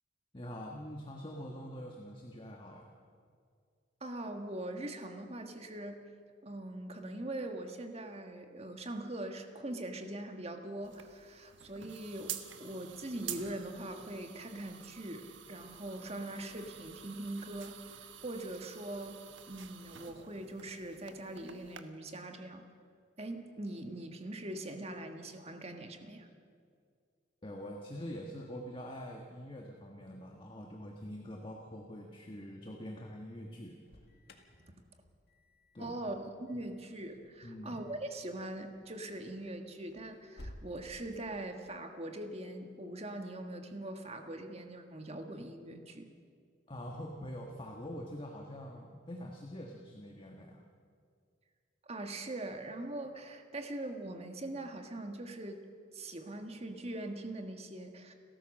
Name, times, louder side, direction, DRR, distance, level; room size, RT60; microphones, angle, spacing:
voice 1, 0.3-2.9 27.4-33.8 35.7-36.0 37.4-37.8 46.7-50.6, equal, 25° left, 1 dB, 1.6 m, -44 dB
voice 2, 4.0-6.0 6.4-19.2 19.5-22.6 23.2-26.3 35.8-46.1 51.8-55.6 55.9-58.1, right 1 dB, 30° right, 5 dB, 1.6 m, -42 dB
sound 1, 10.8-21.8, right 9 dB, 70° right, 1.3 m, -49 dB
Alarm, 33.8-40.7, left 1 dB, 55° left, 2.0 m, -57 dB
29.5 x 13.5 x 6.5 m, 2.2 s
head